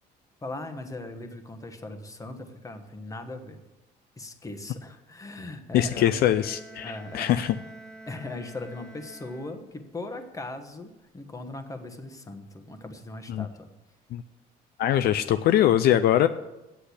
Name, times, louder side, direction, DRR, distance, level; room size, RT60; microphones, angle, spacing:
voice 1, 0.4-3.6 4.2-6.3 6.8-7.3 8.1-13.7, left 2 dB, 20° left, 7 dB, 1.3 m, -39 dB
voice 2, 5.7-7.6 13.3-13.5 14.1-14.2 14.8-16.3, left 11 dB, 65° left, 11 dB, 0.5 m, -22 dB
Bowed string instrument, 6.2-10.0, right 2 dB, 5° left, 1.5 m, -48 dB
8.3 x 7.8 x 8.4 m, 1.0 s
cardioid pair, 110°, 17 cm